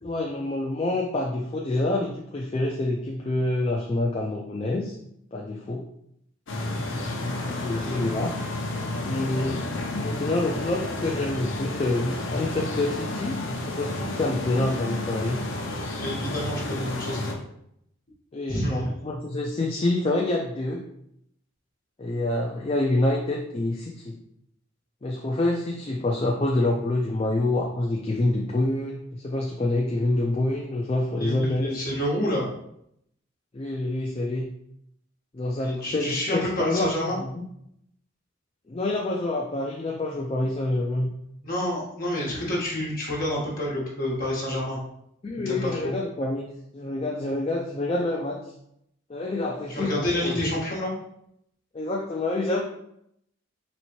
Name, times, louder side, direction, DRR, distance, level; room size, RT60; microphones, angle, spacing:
voice 1, 0.0-5.0 5.3-5.9 7.2-8.4 9.0-9.7 10.0-13.4 13.7-15.4 18.3-20.8 22.0-24.2 25.0-31.8 33.5-34.5 35.3-36.9 37.2-37.4 38.7-41.1 45.2-46.4 46.7-48.4 49.1-50.5 51.7-52.6, left 2 dB, 25° left, 0 dB, 0.3 m, -27 dB
sound 1, 6.5-17.3, left 2 dB, 65° left, 0.7 m, -31 dB
voice 2, 16.0-17.4 18.5-18.9 31.2-32.5 35.6-37.2 41.4-44.8 45.4-45.9 49.7-50.9, left 1 dB, 45° left, -5 dB, 1.3 m, -28 dB
4.2 x 3.2 x 3.0 m, 0.75 s
head